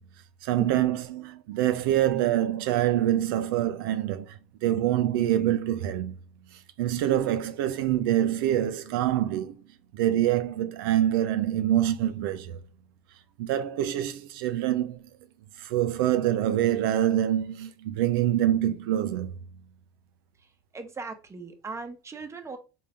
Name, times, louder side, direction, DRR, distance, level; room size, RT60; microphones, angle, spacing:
voice 1, 0.4-6.1 6.5-9.5 9.9-12.6 13.4-15.0 15.6-19.3, right 12 dB, 80° right, 0.4 m, -25 dB
voice 2, 20.7-22.6, right 4 dB, 25° right, 0.9 m, -39 dB
3.7 x 2.6 x 3.3 m
hypercardioid pair, 75°, 12 cm